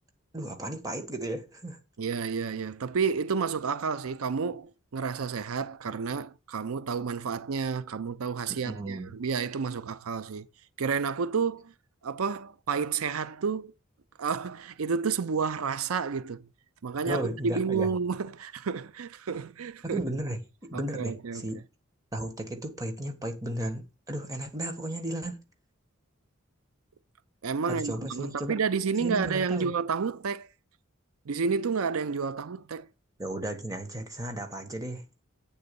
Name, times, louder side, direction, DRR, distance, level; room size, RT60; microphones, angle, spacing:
voice 1, 0.3-1.8 8.5-9.2 17.0-17.9 19.8-21.6 22.1-25.4 27.6-28.6 29.0-29.7 33.2-35.0, right 1 dB, 15° right, 1.4 m, -34 dB
voice 2, 2.0-10.5 10.8-11.7 12.0-13.7 14.2-16.5 16.8-20.0 20.7-21.5 27.4-30.5 31.3-32.9, right 5 dB, 90° right, 0.5 m, -30 dB
8.7 x 4.0 x 6.8 m
head